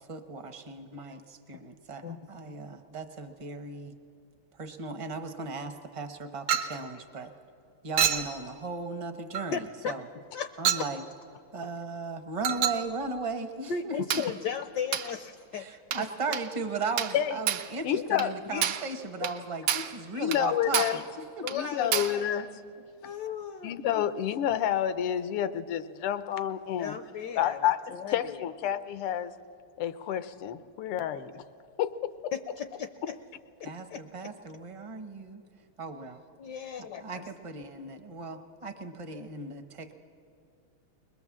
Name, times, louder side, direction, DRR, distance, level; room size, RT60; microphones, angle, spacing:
voice 1, 0.1-3.9 4.5-7.3 7.8-10.0 10.6-11.0 11.5-14.2 15.5-21.0 21.4-21.5 33.6-35.4 35.8-36.2 37.0-39.9, right 3 dB, 35° right, 6 dB, 0.5 m, -37 dB
voice 2, 2.0-2.6 9.5-9.9 10.3-10.8 13.7-15.7 16.0-16.1 19.2-19.3 21.4-22.3 23.0-23.7 26.8-28.5 32.3-33.2 33.9-34.0 36.4-37.3, left 6 dB, 70° left, 9 dB, 1.0 m, -36 dB
Chink clink, 6.5-6.8 8.0-8.3 9.3-9.5 10.7-10.9 12.4-12.9 14.1-14.3 14.9-15.1 15.9-16.1 16.3-16.5 17.0-17.2 17.5-17.7 18.2-18.3 18.6-18.9 19.2-19.4 19.7-20.0 20.3-20.5 20.7-21.0 21.5-21.6 21.9-22.2, right 9 dB, 85° right, 1.9 m, -28 dB
voice 3, 17.8-18.6 20.1-21.0 21.5-22.5 23.6-27.0 27.4-29.3 29.8-31.4 31.8-32.3, left 10 dB, 85° left, 13 dB, 1.7 m, -29 dB
21.0 x 21.0 x 7.4 m, 2.5 s
omnidirectional pair, 2.4 m